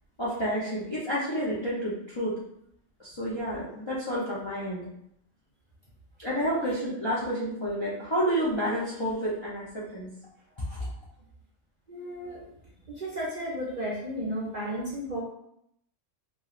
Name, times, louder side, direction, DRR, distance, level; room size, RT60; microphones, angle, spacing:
voice 1, 0.2-2.3 3.0-4.9 6.2-10.1 10.6-10.8, equal, 40° left, -8 dB, 0.4 m, -30 dB
voice 2, 11.9-12.4 12.9-15.2, equal, 50° right, -6 dB, 0.6 m, -33 dB
3.0 x 2.3 x 2.4 m, 0.74 s
omnidirectional pair, 1.3 m